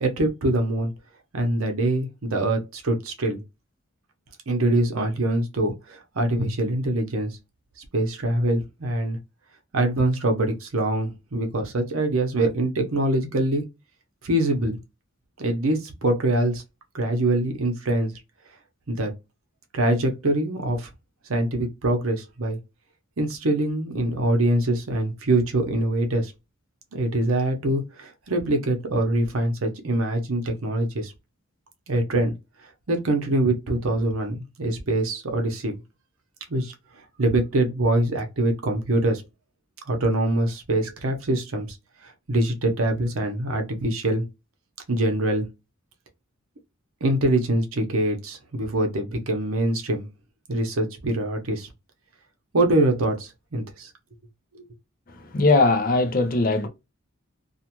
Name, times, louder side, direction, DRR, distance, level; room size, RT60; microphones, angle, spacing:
voice 1, 0.0-0.9 1.3-3.4 4.5-7.3 7.8-9.2 9.7-13.6 14.2-14.8 15.4-16.6 16.9-18.1 18.9-19.1 19.7-20.9 21.3-22.6 23.2-26.3 26.9-31.1 31.9-32.3 32.9-35.8 36.5-36.7 37.2-39.2 39.9-41.8 42.0-44.2 44.9-45.5 47.0-50.1 50.5-51.7 52.5-53.9 54.5-54.7, right 1 dB, 70° right, 0.8 m, -24 dB
voice 2, 55.1-56.7, left 3 dB, 45° left, 0.5 m, -20 dB
2.5 x 2.3 x 2.9 m
head